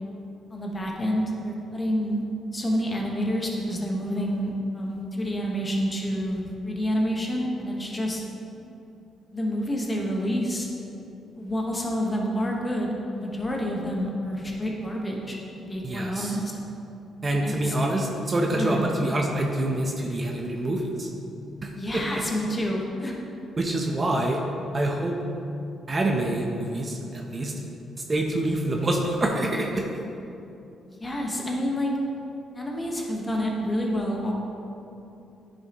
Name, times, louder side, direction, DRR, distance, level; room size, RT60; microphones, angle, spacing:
voice 1, 0.5-2.2 2.5-8.2 9.3-10.7 11.4-16.5 17.3-18.0 18.5-18.9 21.7-23.1 30.9-31.9 32.5-34.3, equal, 20° left, -1 dB, 1.2 m, -28 dB
voice 2, 15.8-16.4 17.2-21.1 21.6-22.2 23.6-24.4 24.7-25.2 25.9-27.5 28.1-29.9, right 1 dB, 30° right, 1 dB, 0.7 m, -26 dB
9.6 x 5.2 x 3.0 m, 2.8 s
cardioid pair, 90°, 0 cm